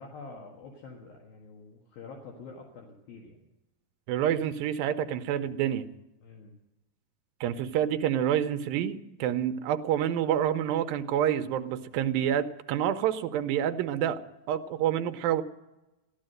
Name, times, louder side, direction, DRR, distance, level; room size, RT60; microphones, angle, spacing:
voice 1, 0.0-3.4 6.2-6.6, left 4 dB, 65° left, 0 dB, 3.3 m, -46 dB
voice 2, 4.1-5.9 7.4-14.2 14.5-15.4, right 10 dB, 75° right, 8 dB, 2.2 m, -28 dB
15.5 x 12.0 x 7.8 m, 0.99 s
omnidirectional pair, 4.7 m